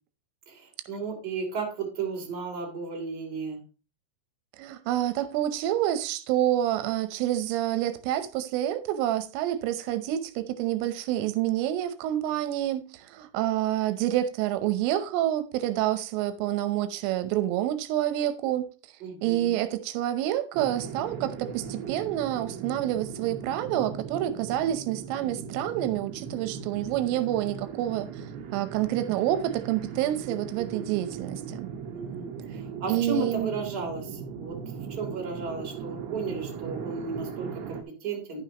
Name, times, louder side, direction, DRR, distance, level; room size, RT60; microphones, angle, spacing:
voice 1, 0.5-3.6 19.0-19.5 30.2-30.9 31.9-38.4, right 4 dB, 25° right, 2.6 m, -34 dB
voice 2, 4.6-18.7 19.2-28.3 28.5-31.7 32.9-33.5, right 13 dB, 85° right, 3.4 m, -28 dB
sound 1, 20.5-37.8, right 6 dB, 65° right, 2.9 m, -39 dB
11.0 x 9.0 x 2.9 m
omnidirectional pair, 5.6 m